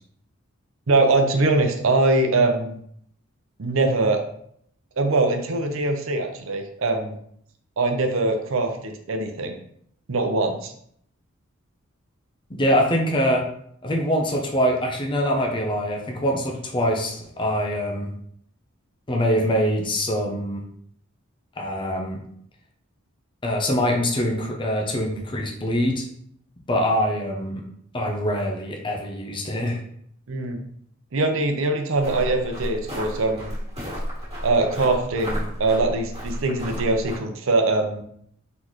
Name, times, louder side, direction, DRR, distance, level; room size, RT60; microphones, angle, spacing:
voice 1, 0.9-2.7 3.6-4.2 5.0-7.2 7.8-9.6 10.1-10.7 30.3-30.6 31.1-33.5 34.4-38.0, right 2 dB, 75° right, 5 dB, 0.7 m, -22 dB
voice 2, 12.5-13.5 13.8-18.1 19.1-20.6 21.6-22.2 23.4-26.1 26.7-27.6 27.9-29.8, equal, 25° left, 1 dB, 0.6 m, -24 dB
sound 1, 32.0-37.2, equal, 30° right, 1.8 m, -32 dB
3.9 x 3.9 x 3.1 m, 0.67 s
head